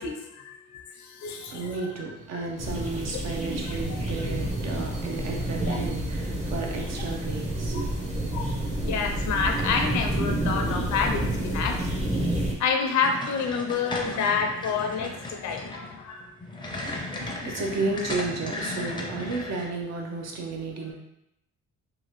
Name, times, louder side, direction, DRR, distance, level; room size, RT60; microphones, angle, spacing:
voice 1, 0.0-1.7 5.7-5.8 7.7-7.8 8.3-8.6 8.9-11.9 12.6-16.3, left 5 dB, 70° left, 4 dB, 0.6 m, -28 dB
voice 2, 1.3-9.3 11.2-11.3 16.9-20.9, right 3 dB, 60° right, 1 dB, 0.7 m, -33 dB
sound 1, 2.6-12.5, right 1 dB, 25° right, 0.7 m, -29 dB
sound 2, 13.0-19.7, left 2 dB, 15° left, 0.5 m, -35 dB
2.9 x 2.3 x 3.0 m, 0.83 s
cardioid pair, 90°, 30 cm